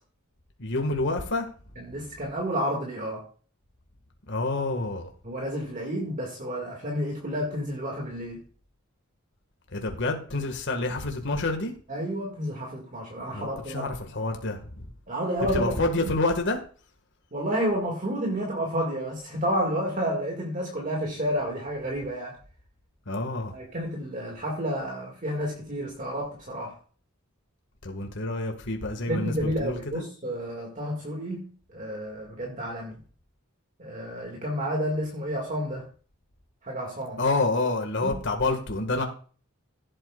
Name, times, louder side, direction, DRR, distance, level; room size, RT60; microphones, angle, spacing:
voice 1, 0.6-1.5 4.3-5.1 9.7-11.7 13.3-13.5 13.7-14.8 15.5-16.6 23.1-23.5 27.8-30.0 37.2-39.0, left 2 dB, 60° left, 1.7 m, -28 dB
voice 2, 1.8-3.3 5.2-8.4 11.9-13.9 15.1-15.7 16.0-16.1 17.3-22.4 23.5-26.8 29.1-33.0 33.8-35.9 36.6-37.2 38.0-38.2, equal, 40° right, 2.0 m, -30 dB
15.5 x 8.1 x 2.4 m
head